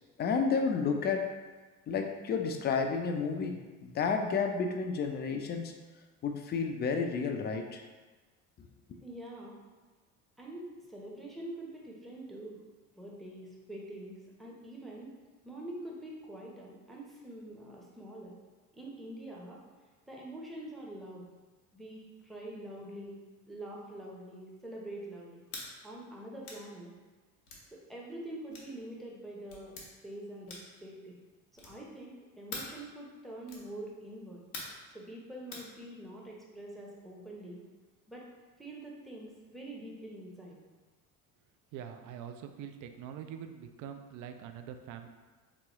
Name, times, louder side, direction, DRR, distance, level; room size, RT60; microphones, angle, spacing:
voice 1, 0.2-1.3 1.9-5.7 6.2-7.8, left 5 dB, 25° left, 4 dB, 0.4 m, -31 dB
voice 2, 9.0-9.6 10.4-12.6 13.0-15.1 15.4-18.3 18.7-19.6 20.1-21.3 21.7-23.2 23.5-25.4 25.8-26.9 27.7-29.8 30.0-31.2 31.5-34.4 34.9-37.6 38.1-38.3 38.6-40.6, right 1 dB, ahead, -3 dB, 0.7 m, -45 dB
sound 1, 25.5-25.7 26.4-26.7 27.5-27.7 28.5-28.7 29.5-29.9 30.5-30.8 31.5-31.9 32.5-32.8 33.5-33.7 34.5-34.8 35.5-35.7, left 3 dB, 90° left, 0.7 m, -43 dB
voice 3, 41.7-45.1, right 8 dB, 45° right, 7 dB, 0.4 m, -44 dB
3.5 x 3.0 x 3.0 m, 1.3 s
hypercardioid pair, 60°, 44 cm